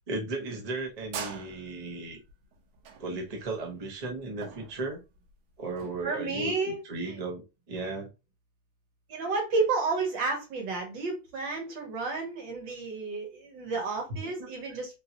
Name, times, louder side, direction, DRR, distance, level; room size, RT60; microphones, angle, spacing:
voice 1, 0.1-2.2 3.0-5.0 5.6-8.1 14.1-14.5, right 2 dB, 50° right, 1 dB, 0.4 m, -35 dB
sound 1, 0.6-6.0, right 7 dB, 90° right, 1.4 m, -43 dB
voice 2, 6.0-6.8 7.0-7.2 9.1-15.0, right 4 dB, 70° right, 2 dB, 1.8 m, -31 dB
3.6 x 2.7 x 2.7 m, 0.26 s
omnidirectional pair, 2.1 m